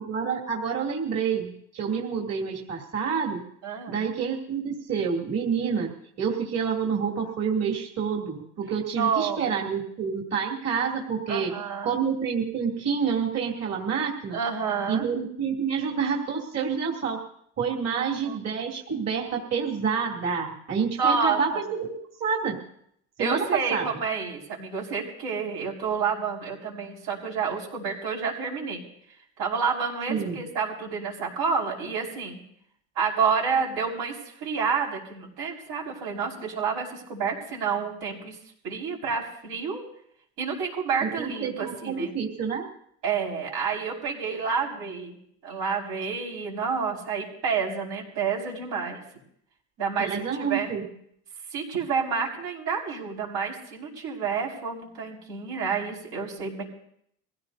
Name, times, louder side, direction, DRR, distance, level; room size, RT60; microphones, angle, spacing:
voice 1, 0.0-3.4 3.9-5.9 6.2-11.5 11.8-14.4 14.9-17.2 17.6-22.6 23.2-23.4 23.7-23.9 30.1-30.4 41.0-42.6 50.0-50.8, right 6 dB, 45° right, -2 dB, 2.8 m, -28 dB
voice 2, 3.6-4.0 9.0-9.5 11.3-11.9 14.3-15.0 17.9-18.5 21.0-21.4 23.2-28.8 29.4-32.4 33.0-38.4 38.6-39.8 40.4-42.1 43.0-45.1 45.4-49.0 49.8-50.8 51.5-56.6, right 6 dB, 80° right, -2 dB, 5.2 m, -29 dB
24.0 x 16.0 x 2.7 m, 0.68 s
cardioid pair, 110°, 35 cm